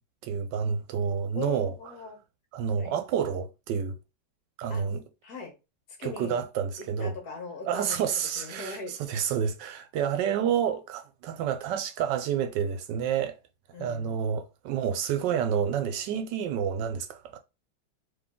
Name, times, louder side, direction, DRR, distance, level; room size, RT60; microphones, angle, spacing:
voice 1, 0.2-1.7 2.5-3.9 4.6-5.0 6.0-7.1 7.7-13.4 13.8-17.4, right 8 dB, 75° right, 1.2 m, -29 dB
voice 2, 1.3-2.2 2.8-3.0 4.7-4.8 5.2-5.5 6.0-6.4 6.8-8.0 8.4-9.0 13.7-14.2, left 4 dB, 55° left, 1.6 m, -39 dB
3.8 x 3.0 x 3.6 m
omnidirectional pair, 2.1 m